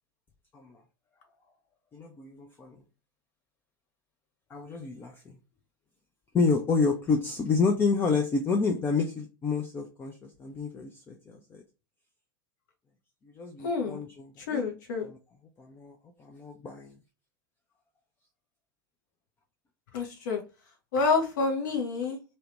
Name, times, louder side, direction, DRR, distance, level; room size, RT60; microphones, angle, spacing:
voice 1, 1.9-2.8 4.5-5.4 6.3-11.6 13.2-14.6 15.0-15.2 15.6-17.0, left 4 dB, 15° left, 3 dB, 0.4 m, -29 dB
voice 2, 13.6-14.1 14.5-15.1 19.9-20.4 20.9-22.2, left 4 dB, 55° left, 3 dB, 0.7 m, -28 dB
2.7 x 2.1 x 3.0 m, 0.31 s
figure-of-eight pair, 90°, 12 cm